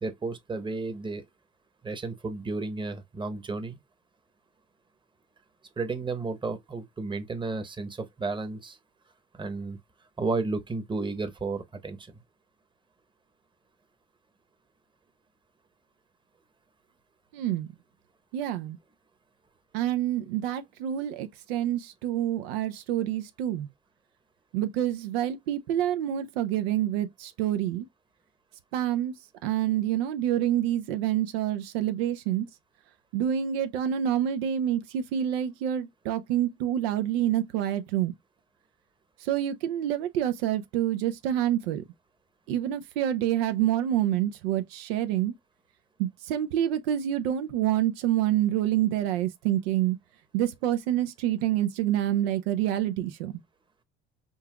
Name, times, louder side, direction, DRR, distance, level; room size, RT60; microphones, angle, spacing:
voice 1, 0.0-1.2 1.8-3.8 5.8-8.8 9.3-9.8 10.2-12.1, right 3 dB, 15° right, 0.9 m, -32 dB
voice 2, 17.3-17.7 18.3-18.8 19.7-23.7 24.5-27.9 28.7-29.1 29.4-32.5 33.1-38.1 39.3-41.8 42.5-45.3 46.0-50.0 50.3-53.4, right 11 dB, 90° right, 0.6 m, -27 dB
5.5 x 2.3 x 2.3 m
supercardioid pair, 90°, 30 cm